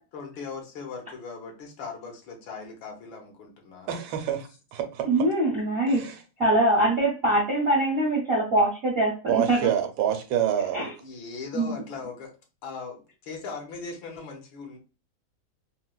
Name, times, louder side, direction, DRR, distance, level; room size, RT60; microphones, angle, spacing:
voice 1, 0.1-3.9 10.6-10.7 11.0-12.3 12.6-14.8, left 4 dB, 75° left, 2 dB, 1.5 m, -39 dB
voice 2, 3.9-5.3 5.9-6.2 9.3-10.9, right 9 dB, 80° right, 6 dB, 1.3 m, -27 dB
voice 3, 5.0-6.0 6.4-9.7 10.7-10.9 11.5-11.8, right 1 dB, 55° right, -2 dB, 0.6 m, -23 dB
4.0 x 2.1 x 2.3 m, 0.32 s
omnidirectional pair, 2.2 m